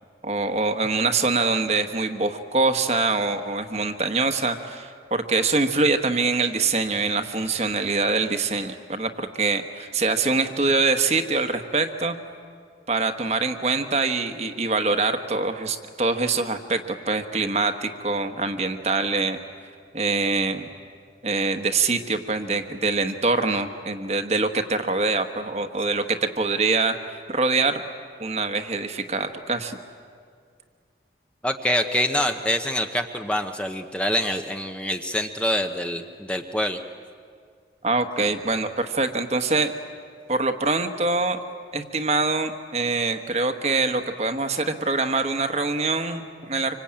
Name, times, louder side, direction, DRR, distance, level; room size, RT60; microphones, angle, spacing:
voice 1, 0.2-12.2 12.9-19.4 19.9-20.7 21.2-27.8 28.2-29.8 37.8-39.7 40.3-41.4 41.7-46.8, right 3 dB, 35° right, 7 dB, 1.3 m, -24 dB
voice 2, 31.4-36.8, left 1 dB, 5° left, 5 dB, 0.8 m, -25 dB
26.0 x 25.0 x 8.8 m, 2.2 s
head